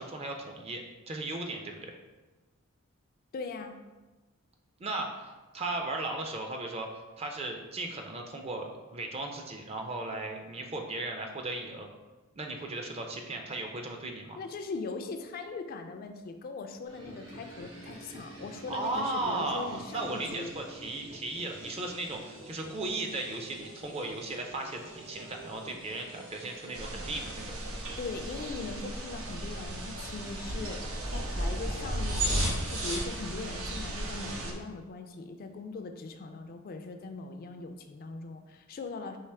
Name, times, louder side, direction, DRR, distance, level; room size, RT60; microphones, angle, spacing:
voice 1, 0.0-2.0 4.8-6.9 7.2-11.9 12.4-14.4 18.7-27.7, right 2 dB, 30° right, 3 dB, 0.4 m, -36 dB
voice 2, 3.3-3.8 14.4-20.5 28.0-39.2, left 3 dB, 45° left, 6 dB, 0.3 m, -40 dB
sound 1, 16.9-33.2, right 1 dB, 65° right, 1.2 m, -39 dB
sound 2, 26.7-34.5, right 1 dB, 80° right, 0.6 m, -39 dB
4.7 x 2.9 x 3.3 m, 1.2 s
head